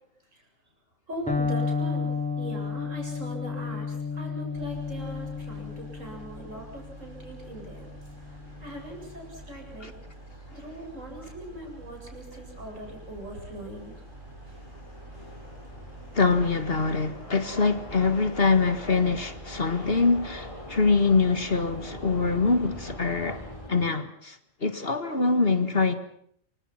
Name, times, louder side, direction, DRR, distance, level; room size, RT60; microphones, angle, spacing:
voice 1, 1.1-7.9 8.6-9.9 10.5-14.1 14.4-14.6 15.1-15.3, equal, 70° right, 8.3 m, -40 dB
Electric guitar, 1.3-9.1, left 5 dB, 5° left, 3.0 m, -32 dB
sound 1, 4.5-23.7, right 1 dB, 40° right, 6.0 m, -47 dB
sound 2, 4.9-23.9, left 1 dB, 25° left, 4.6 m, -47 dB
voice 2, 16.1-23.4 23.7-25.9, left 4 dB, 45° left, 2.1 m, -24 dB
28.0 x 25.5 x 5.9 m
omnidirectional pair, 1.4 m